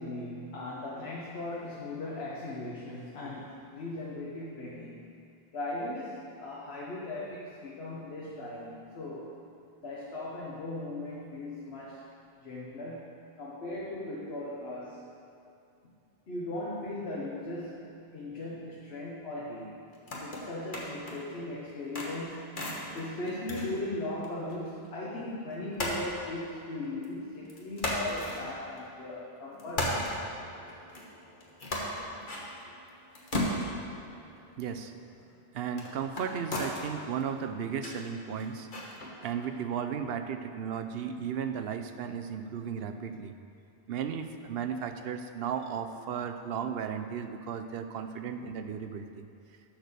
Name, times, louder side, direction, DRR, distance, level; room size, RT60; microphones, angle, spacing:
voice 1, 0.0-5.0 5.5-9.4 9.8-12.1 12.4-15.1 16.3-19.7 20.2-30.1, left 2 dB, 85° left, -5 dB, 1.3 m, -38 dB
sound 1, 19.9-21.3 21.7-24.5 24.8-24.9 25.8-27.1 27.5-29.1 29.5-39.5, left 1 dB, 55° left, 1.4 m, -37 dB
voice 2, 34.6-34.9 35.5-38.7 39.2-43.3 43.9-49.2, right 7 dB, 75° right, 8 dB, 0.8 m, -35 dB
10.5 x 4.7 x 6.7 m, 2.5 s
omnidirectional pair, 1.0 m